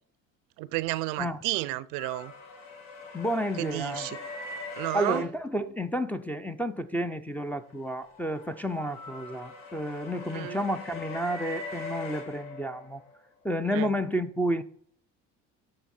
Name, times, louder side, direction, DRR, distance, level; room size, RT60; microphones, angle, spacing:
voice 1, 0.6-2.3 3.5-4.2 4.8-5.3 10.2-10.6 13.7-14.0, right 18 dB, 70° right, 0.5 m, -32 dB
sound 1, 2.0-5.2 7.6-13.1, left 3 dB, 70° left, 1.7 m, -41 dB
voice 2, 3.1-4.1 4.9-13.0 13.4-14.6, equal, 5° left, 0.4 m, -31 dB
8.8 x 3.5 x 5.4 m
supercardioid pair, 105°, 34 cm